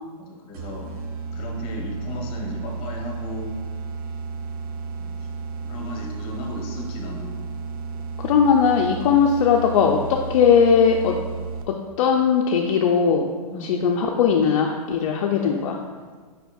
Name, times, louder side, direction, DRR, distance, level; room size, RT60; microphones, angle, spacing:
voice 1, 0.2-0.9 1.3-3.5 5.0-5.2 5.6-7.4 13.5-13.7, left 2 dB, 30° left, 1 dB, 0.8 m, -35 dB
sound 1, 0.5-11.9, right 4 dB, 65° right, 0.5 m, -33 dB
voice 2, 8.2-11.2 11.7-13.3 13.6-15.8, left 6 dB, 55° left, 1 dB, 0.4 m, -19 dB
5.1 x 4.2 x 2.3 m, 1.5 s
hypercardioid pair, 140°, 20 cm